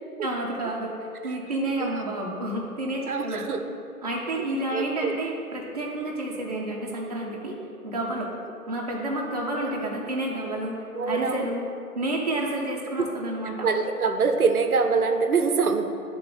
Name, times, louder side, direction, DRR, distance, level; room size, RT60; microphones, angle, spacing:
voice 1, 0.2-3.4 4.0-7.6 7.8-8.3 8.7-11.6 11.9-13.7, right 1 dB, 25° right, -2 dB, 0.8 m, -30 dB
voice 2, 3.1-3.6 4.7-5.2 9.6-9.9 10.9-11.5 13.6-15.8, right 4 dB, 70° right, 6 dB, 0.7 m, -24 dB
9.9 x 3.7 x 4.0 m, 2.6 s
figure-of-eight pair, 150°, 46 cm